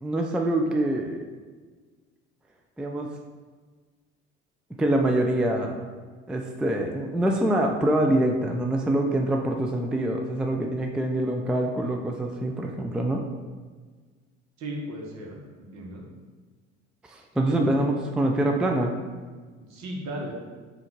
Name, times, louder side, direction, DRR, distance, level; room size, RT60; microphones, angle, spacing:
voice 1, 0.0-1.2 2.8-3.1 4.8-5.8 6.3-13.2 17.1-18.9, right 1 dB, 5° right, 2 dB, 0.3 m, -25 dB
voice 2, 14.6-16.0 17.5-17.8 19.7-20.3, right 1 dB, 55° right, -1 dB, 1.1 m, -36 dB
3.7 x 2.5 x 4.5 m, 1.5 s
hypercardioid pair, 65°, 32 cm